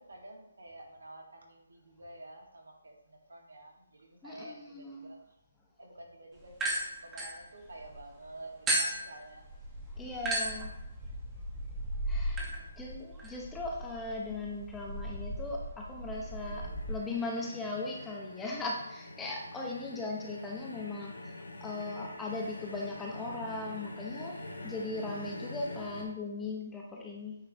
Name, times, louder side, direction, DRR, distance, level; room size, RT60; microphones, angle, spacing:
voice 1, 0.0-5.2 5.8-9.5 12.3-12.8 21.0-21.1, right 1 dB, 85° right, -1 dB, 2.1 m, -50 dB
voice 2, 4.2-5.1 10.0-10.8 12.1-12.4 12.8-21.1 21.6-27.4, left 2 dB, 10° left, -2 dB, 1.0 m, -38 dB
sound 1, 6.5-8.0 8.7-17.0, right 1 dB, 10° right, 1.3 m, -36 dB
sound 2, 16.1-26.0, left 2 dB, 90° left, 1.5 m, -45 dB
9.0 x 3.1 x 4.3 m, 0.86 s
figure-of-eight pair, 150°, 0 cm